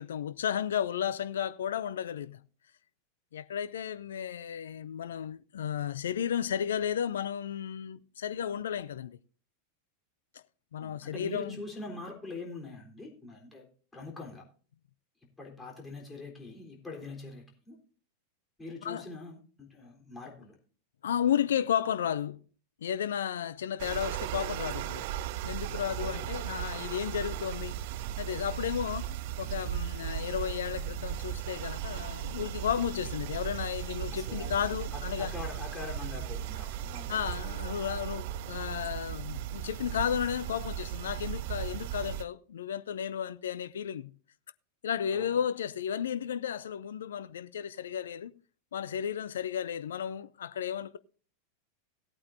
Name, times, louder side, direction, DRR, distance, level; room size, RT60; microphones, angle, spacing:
voice 1, 0.0-2.4 3.3-9.2 10.7-11.6 18.8-19.0 21.0-22.4 22.8-25.1 25.4-27.8 28.2-29.1 29.4-35.3 37.1-44.1 44.8-48.3 48.7-51.0, left 9 dB, 70° left, 0.5 m, -33 dB
voice 2, 10.8-13.7 13.9-14.4 15.4-17.8 18.6-20.6 26.0-26.3 34.1-37.6 45.1-45.4, left 3 dB, 10° left, 3.8 m, -44 dB
sound 1, 23.8-42.2, right 11 dB, 55° right, 0.4 m, -36 dB
17.5 x 8.7 x 2.7 m
figure-of-eight pair, 90°, 0 cm